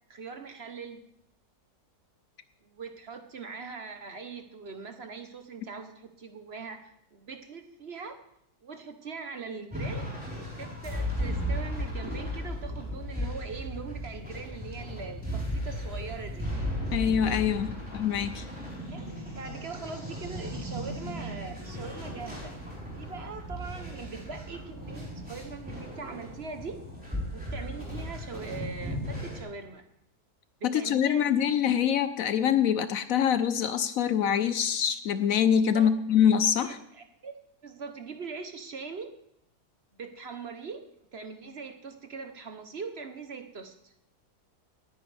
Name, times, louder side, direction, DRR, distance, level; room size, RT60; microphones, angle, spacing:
voice 1, 0.1-1.0 2.6-8.2 8.6-10.1 10.6-16.5 18.9-22.5 22.9-26.8 27.3-29.8 30.6-31.3 35.7-35.9 36.6-39.1 39.9-40.8 41.1-43.9, right 5 dB, 50° right, 7 dB, 1.0 m, -41 dB
sound 1, 9.7-29.4, equal, 5° right, 3.9 m, -36 dB
voice 2, 16.9-18.4 30.6-36.8, left 8 dB, 70° left, 12 dB, 0.9 m, -25 dB
19.0 x 9.6 x 3.3 m, 0.75 s
omnidirectional pair, 1.7 m